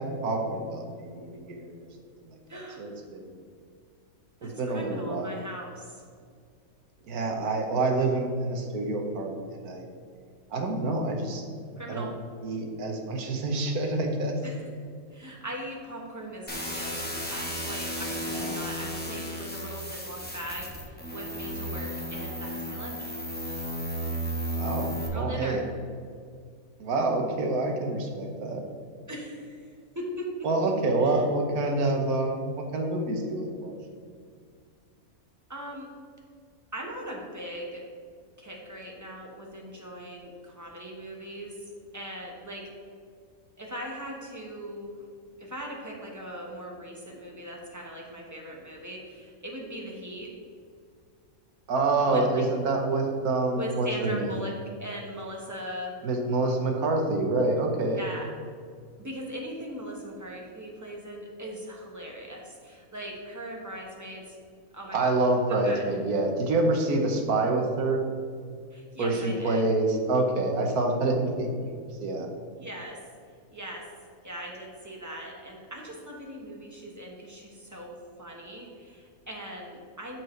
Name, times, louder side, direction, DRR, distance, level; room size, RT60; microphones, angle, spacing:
voice 1, 0.0-1.9 2.5-3.3 4.4-5.4 7.1-9.8 10.5-11.4 11.9-12.1 12.4-14.4 18.3-18.6 24.5-25.6 26.8-28.6 30.4-33.8 51.7-54.4 56.0-58.0 64.9-68.0 69.0-71.7 72.0-72.3, right 2 dB, 85° right, 2 dB, 1.5 m, -27 dB
voice 2, 2.5-2.9 4.4-6.0 11.8-12.1 14.4-14.7 15.1-23.1 25.1-25.6 29.1-30.3 30.6-30.7 31.0-31.2 35.5-35.9 36.7-37.8 38.4-42.7 43.6-45.0 45.4-50.3 52.0-52.4 53.5-54.5 54.8-56.0 57.9-58.3 59.0-64.4 64.7-65.2 65.5-65.9 68.7-69.7 72.6-73.0 73.5-73.8 74.2-77.9 78.2-80.2, equal, 15° right, -1 dB, 1.0 m, -40 dB
sound 1, 16.5-25.1, equal, 10° left, 0.8 m, -34 dB
12.5 x 4.7 x 3.2 m, 2.2 s
omnidirectional pair, 1.5 m